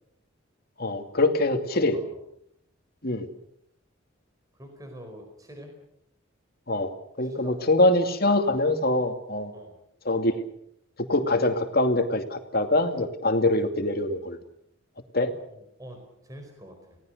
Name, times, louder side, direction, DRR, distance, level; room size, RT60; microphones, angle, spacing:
voice 1, 0.8-2.0 3.0-3.3 6.7-6.9 7.2-9.5 10.0-10.4 11.1-14.4 15.1-15.3, left 2 dB, 50° left, 6 dB, 2.5 m, -24 dB
voice 2, 1.5-2.1 4.5-5.7 7.2-7.7 9.5-9.7 15.5-17.0, equal, 20° right, 4 dB, 4.6 m, -46 dB
30.0 x 19.0 x 6.6 m, 0.72 s
head